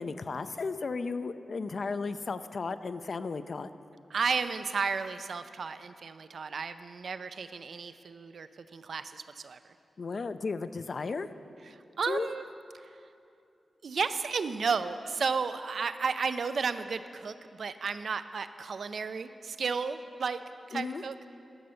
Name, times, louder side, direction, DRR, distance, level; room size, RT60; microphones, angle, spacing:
voice 1, 0.0-3.7 10.0-11.3 12.1-12.3 20.7-21.0, left 4 dB, 60° left, 11 dB, 0.4 m, -34 dB
voice 2, 4.1-9.7 11.6-12.4 12.7-13.0 13.8-20.4 20.7-21.2, right 5 dB, 70° right, 12 dB, 0.4 m, -33 dB
12.5 x 6.8 x 6.4 m, 2.6 s
cardioid pair, 65°, 0 cm